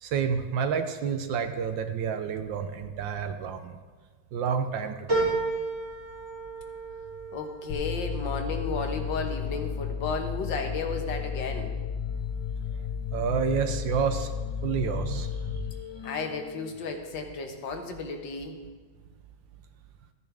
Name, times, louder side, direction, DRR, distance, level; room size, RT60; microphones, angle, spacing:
voice 1, 0.0-3.8 4.3-5.4 13.1-14.3 14.6-15.6, right 6 dB, 70° right, 8 dB, 1.4 m, -29 dB
sound 1, 5.1-9.8 10.3-11.0 11.4-11.5, right 3 dB, 25° right, 4.3 m, -33 dB
voice 2, 7.3-11.7 16.0-18.6, left 4 dB, 65° left, 4 dB, 1.7 m, -33 dB
sound 2, 7.7-16.7, left 7 dB, 90° left, 2.0 m, -33 dB
14.5 x 9.6 x 3.4 m, 1.4 s
omnidirectional pair, 2.2 m